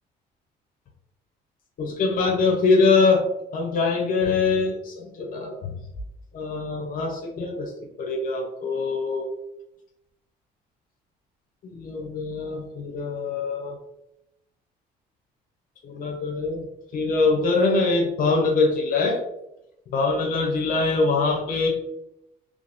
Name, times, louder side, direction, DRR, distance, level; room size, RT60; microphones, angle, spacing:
voice 1, 1.8-3.2 3.5-5.7 6.3-7.7 8.0-9.3 11.6-13.8 15.8-16.6 16.9-19.2 19.9-21.7, left 4 dB, 55° left, 1 dB, 0.9 m, -23 dB
3.8 x 3.2 x 2.6 m, 0.84 s
cardioid pair, 110°, 17 cm